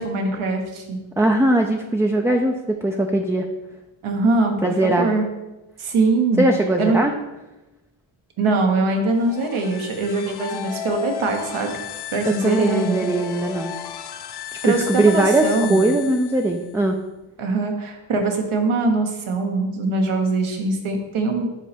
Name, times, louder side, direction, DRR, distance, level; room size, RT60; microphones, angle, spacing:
voice 1, 0.0-1.0 4.0-5.2 5.8-6.5 6.8-7.0 8.4-11.7 12.1-13.1 14.6-15.8 17.4-21.5, right 3 dB, 75° right, 3 dB, 1.2 m, -22 dB
voice 2, 1.2-3.5 4.6-5.1 6.4-7.1 12.3-13.7 14.7-17.0, right 1 dB, 5° right, 2 dB, 0.3 m, -20 dB
sound 1, 9.1-16.8, left 9 dB, 55° left, 0.5 m, -34 dB
5.5 x 4.1 x 5.1 m, 1.0 s
cardioid pair, 70°, 49 cm